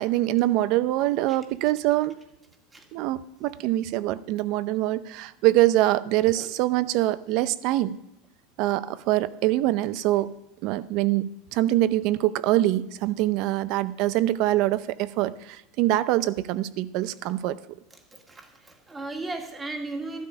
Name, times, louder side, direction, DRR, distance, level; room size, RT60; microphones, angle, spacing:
voice 1, 0.0-2.2 2.9-8.0 8.6-10.3 10.6-17.6, right 15 dB, 55° right, 16 dB, 0.6 m, -24 dB
voice 2, 18.1-20.2, right 2 dB, 15° right, 3 dB, 1.9 m, -36 dB
12.5 x 12.0 x 5.1 m, 0.86 s
supercardioid pair, 145°, 0 cm